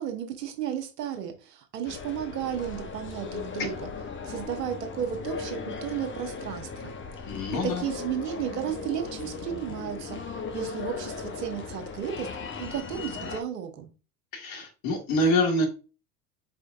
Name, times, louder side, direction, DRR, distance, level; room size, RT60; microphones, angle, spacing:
voice 1, 0.0-3.9 4.2-6.9 7.6-12.3 12.6-13.9, right 9 dB, 75° right, 6 dB, 1.2 m, -33 dB
sound 1, 1.8-13.4, left 5 dB, 25° left, 0.9 m, -37 dB
voice 2, 7.3-7.8 14.3-15.7, left 1 dB, 50° left, 3 dB, 1.6 m, -26 dB
5.0 x 4.3 x 2.5 m, 0.32 s
hypercardioid pair, 70°, 48 cm